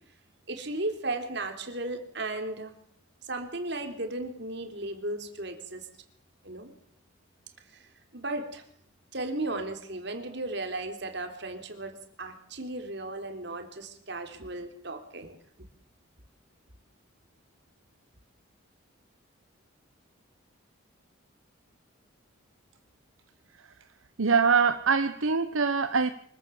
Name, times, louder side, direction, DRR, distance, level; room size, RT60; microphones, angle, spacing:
voice 1, 0.5-2.7 3.2-5.9 6.4-6.7 7.7-8.6 9.1-15.4, right 2 dB, 55° right, 3.5 m, -35 dB
voice 2, 24.2-26.1, right 5 dB, 75° right, 1.0 m, -23 dB
24.5 x 15.0 x 7.2 m
head